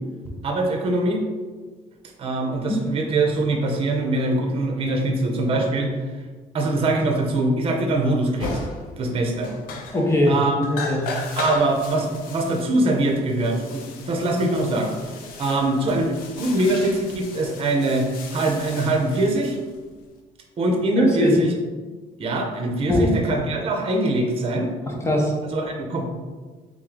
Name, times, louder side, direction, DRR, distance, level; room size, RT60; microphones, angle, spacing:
voice 1, 0.4-1.2 2.2-6.1 6.5-8.6 9.0-9.5 10.3-10.7 11.4-14.9 15.4-19.6 20.6-21.5 22.2-24.7 25.4-26.0, right 2 dB, 40° right, 2 dB, 0.7 m, -23 dB
sound 1, 8.4-9.1 9.4-10.3 10.6-20.1, left 3 dB, 90° left, 0.6 m, -36 dB
voice 2, 9.9-10.4 10.7-11.1 21.0-21.4 22.9-23.1 24.9-25.3, left 1 dB, 20° left, -1 dB, 0.8 m, -20 dB
3.7 x 3.1 x 3.7 m, 1.4 s
cardioid pair, 120°, 15 cm